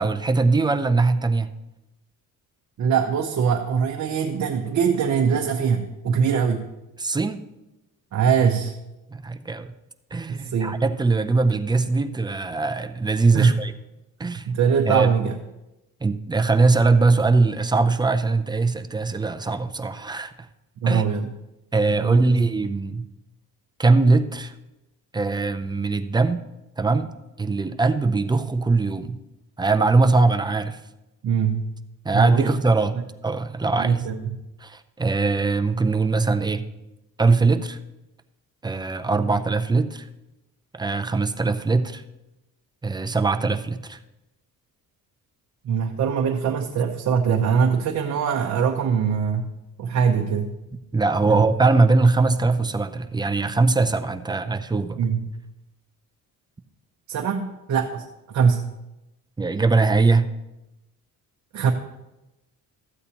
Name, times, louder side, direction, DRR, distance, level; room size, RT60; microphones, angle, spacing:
voice 1, 0.0-1.5 7.0-7.4 9.1-9.7 10.1-13.7 14.2-14.5 14.9-15.3 16.0-20.3 20.9-21.0 21.7-23.1 23.8-24.5 25.1-26.4 26.8-29.2 29.6-30.8 32.0-33.0 33.2-34.0 34.6-36.6 37.2-37.8 38.6-40.1 40.7-42.0 42.8-44.0 50.9-55.0 59.4-60.3, right 3 dB, 10° right, 9 dB, 0.4 m, -21 dB
voice 2, 2.8-6.7 8.1-8.8 10.3-10.8 13.3-13.6 14.5-15.3 20.8-21.3 22.0-22.4 31.2-31.7 32.1-32.5 32.9-33.0 33.8-34.4 45.6-49.5 49.8-50.6 51.3-51.4 55.0-55.3 57.1-58.7 61.5-61.7, right 6 dB, 50° right, 2 dB, 0.8 m, -22 dB
14.0 x 8.2 x 2.9 m, 0.96 s
cardioid pair, 115°, 36 cm